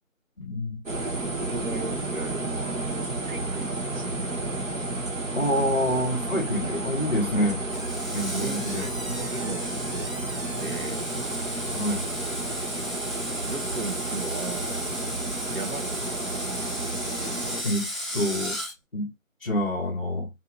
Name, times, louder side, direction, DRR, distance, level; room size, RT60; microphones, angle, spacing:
voice 1, 0.4-0.8 5.3-7.6 8.1-8.9 11.7-12.0 17.6-18.6 18.9-19.1 19.4-20.3, left 1 dB, 45° left, 0.6 m, -27 dB
sound 1, 0.9-17.6, right 2 dB, 65° right, 1.1 m, -31 dB
voice 2, 1.2-4.3 6.6-6.8 7.3-7.5 8.3-11.1 13.5-14.9 15.5-16.2, right 3 dB, 90° right, 0.8 m, -37 dB
Screech, 7.7-18.7, equal, ahead, 0.6 m, -36 dB
2.7 x 2.3 x 2.4 m
figure-of-eight pair, 175°, 41 cm